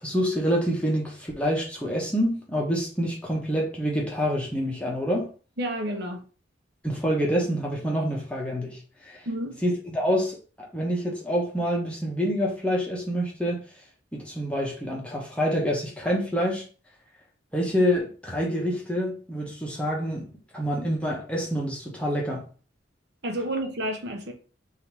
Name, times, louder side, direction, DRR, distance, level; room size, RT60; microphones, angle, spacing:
voice 1, 0.0-5.3 6.8-9.3 9.6-13.6 14.1-16.7 17.5-22.5, equal, 5° left, 1.0 m, -27 dB
voice 2, 5.6-6.2 9.2-9.6 23.2-24.3, right 1 dB, 60° right, 1.0 m, -30 dB
3.8 x 2.8 x 4.7 m
head